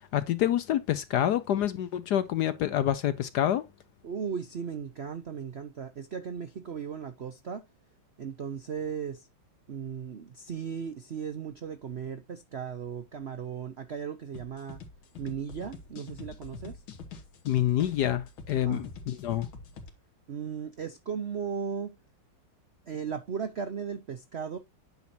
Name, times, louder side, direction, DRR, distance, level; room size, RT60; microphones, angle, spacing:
voice 1, 0.1-3.6 17.4-19.5, left 11 dB, 70° left, 1.0 m, -27 dB
voice 2, 4.0-7.7 8.2-9.3 9.7-14.8 15.2-16.8 18.5-18.9 20.3-22.0 22.9-24.6, right 7 dB, 70° right, 0.6 m, -36 dB
sound 1, 14.3-19.9, left 4 dB, 85° left, 2.2 m, -45 dB
9.4 x 5.9 x 2.7 m
omnidirectional pair, 2.2 m